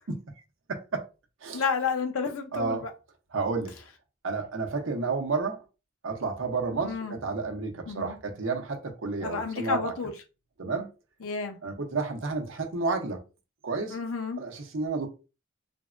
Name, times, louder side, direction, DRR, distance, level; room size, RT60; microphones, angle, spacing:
voice 1, 0.7-1.0 1.4-1.6 2.5-2.9 3.3-3.7 4.2-5.6 6.0-9.9 10.6-10.9 11.6-13.2 13.6-14.0 14.4-15.1, right 4 dB, 70° right, 0.6 m, -31 dB
voice 2, 1.5-2.9 6.8-7.1 7.9-8.2 9.2-10.1 11.2-11.5 13.9-14.4, left 5 dB, 85° left, 0.6 m, -31 dB
3.3 x 2.1 x 2.4 m
head